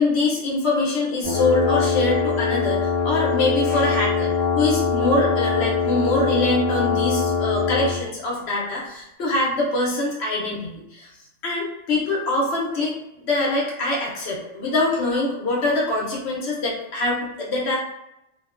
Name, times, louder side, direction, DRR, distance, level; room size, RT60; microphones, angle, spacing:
voice 1, 0.0-11.1 11.4-13.0 13.2-17.8, left 2 dB, 60° left, -3 dB, 0.9 m, -24 dB
sound 1, 1.2-8.0, left 5 dB, 25° right, 0.8 m, -22 dB
2.7 x 2.1 x 2.4 m, 0.86 s
omnidirectional pair, 1.3 m